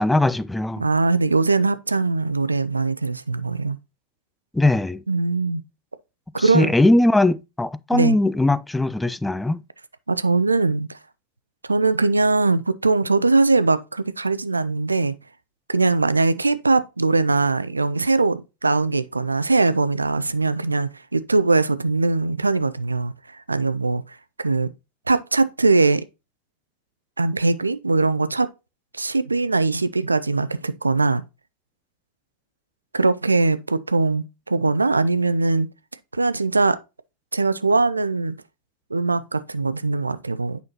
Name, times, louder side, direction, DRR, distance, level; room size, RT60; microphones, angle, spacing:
voice 1, 0.0-0.8 4.5-5.0 6.4-9.6, left 2 dB, 5° left, 0.3 m, -20 dB
voice 2, 0.8-3.8 5.1-5.6 6.3-6.7 7.9-8.2 10.1-11.0 11.6-15.1 15.7-24.7 25.1-26.0 27.2-28.5 28.9-31.2 32.9-35.7 36.1-36.8 37.3-38.4 38.9-40.6, right 3 dB, 80° right, 0.4 m, -21 dB
8.5 x 5.7 x 2.8 m
figure-of-eight pair, 90°, 0 cm